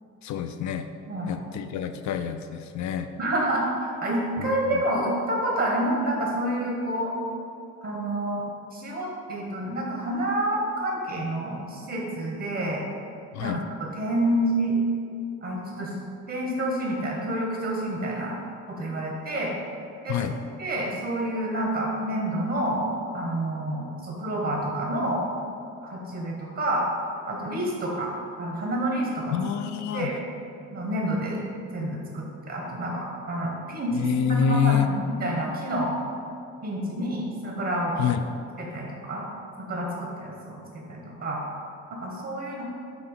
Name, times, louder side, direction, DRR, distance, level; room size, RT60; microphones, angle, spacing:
voice 1, 0.2-0.9 1.3-3.1 4.4-4.8 13.3-13.6 20.1-20.4 29.3-30.1 33.9-34.9 38.0-38.2, left 8 dB, 70° left, 7 dB, 0.5 m, -27 dB
voice 2, 3.2-7.1 7.8-8.4 8.7-12.8 13.4-14.8 15.4-18.4 18.7-19.5 20.0-20.2 20.6-22.8 23.1-25.2 25.8-26.8 27.2-29.3 29.9-30.2 30.7-31.4 31.7-35.9 36.6-38.1 38.6-39.2 39.6-41.5 41.9-42.6, right 1 dB, 50° right, -2 dB, 1.4 m, -28 dB
8.0 x 2.9 x 5.7 m, 2.6 s
cardioid pair, 90°, 30 cm